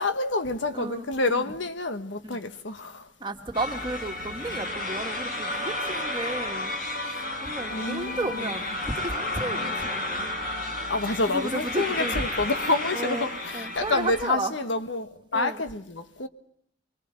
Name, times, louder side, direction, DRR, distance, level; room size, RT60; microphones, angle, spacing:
voice 1, 0.0-3.1 7.7-8.3 10.9-16.3, left 3 dB, 80° left, 1.4 m, -28 dB
voice 2, 0.7-1.1 1.3-1.5 2.2-2.5 3.2-6.7 7.4-10.3 11.3-12.2 12.9-14.5 15.3-15.6, right 2 dB, 25° right, 1.8 m, -33 dB
sound 1, 3.5-14.2, left 1 dB, 50° left, 5.1 m, -32 dB
25.0 x 23.0 x 7.6 m
head